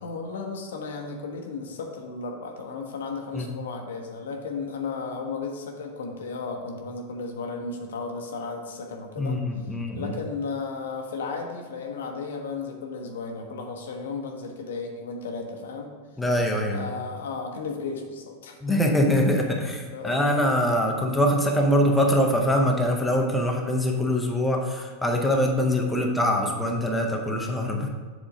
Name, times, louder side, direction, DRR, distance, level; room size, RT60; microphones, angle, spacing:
voice 1, 0.0-9.4 9.9-15.9 16.7-18.8 19.8-20.4, left 4 dB, 60° left, 2 dB, 0.9 m, -34 dB
voice 2, 9.2-10.1 16.2-16.9 18.6-27.9, equal, 5° left, 0 dB, 0.8 m, -23 dB
7.3 x 3.7 x 5.0 m, 1.5 s
figure-of-eight pair, 90°, 0 cm